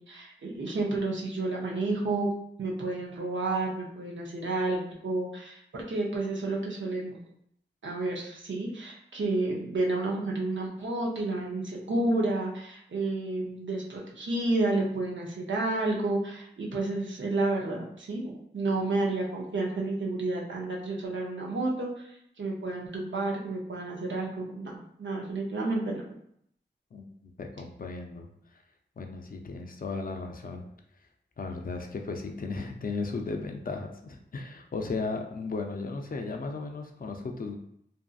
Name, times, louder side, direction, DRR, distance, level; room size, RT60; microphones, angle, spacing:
voice 1, 0.1-2.3 2.6-7.2 7.8-22.1 22.4-26.0, right 2 dB, 85° right, -2 dB, 0.6 m, -30 dB
voice 2, 26.9-28.3 29.0-30.7 31.4-37.6, left 3 dB, 50° left, 4 dB, 0.4 m, -35 dB
2.6 x 2.5 x 2.3 m, 0.70 s
wide cardioid pair, 50°, 19 cm